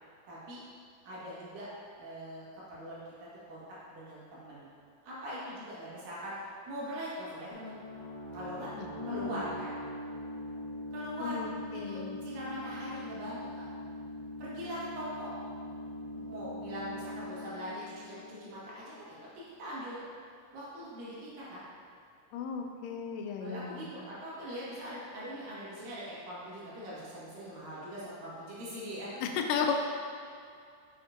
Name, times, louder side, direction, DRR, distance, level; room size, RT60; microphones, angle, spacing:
voice 1, 0.3-0.6 1.1-1.7 2.0-3.6 3.9-4.7 5.0-7.8 8.3-8.7 9.1-9.7 10.9-11.5 11.7-13.6 14.4-15.3 16.1-20.0 20.5-21.6 23.4-29.2 29.7-29.8, equal, 85° right, -8 dB, 3.4 m, -42 dB
sound 1, 7.5-19.0, left 1 dB, 65° left, 2.2 m, -42 dB
voice 2, 8.8-9.4 11.2-12.2 22.3-23.9 29.2-29.7, left 7 dB, 85° left, 4 dB, 2.2 m, -35 dB
7.0 x 6.3 x 2.5 m, 2.4 s
omnidirectional pair, 3.8 m